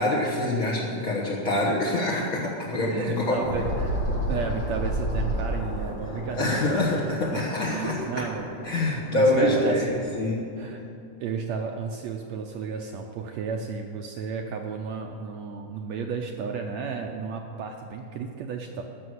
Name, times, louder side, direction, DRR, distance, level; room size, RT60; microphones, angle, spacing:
voice 1, 0.0-3.4 6.3-8.0 8.6-10.4, left 1 dB, 55° left, -4 dB, 0.9 m, -25 dB
voice 2, 2.8-7.1 7.6-10.0 10.6-10.8 11.2-18.8, right 5 dB, 75° right, 3 dB, 1.7 m, -33 dB
sound 1, 3.2-10.2, left 1 dB, 40° left, 1.9 m, -39 dB
Bird, 3.4-5.9, right 1 dB, 80° left, 4.2 m, -28 dB
14.0 x 6.2 x 7.9 m, 2.6 s
omnidirectional pair, 3.6 m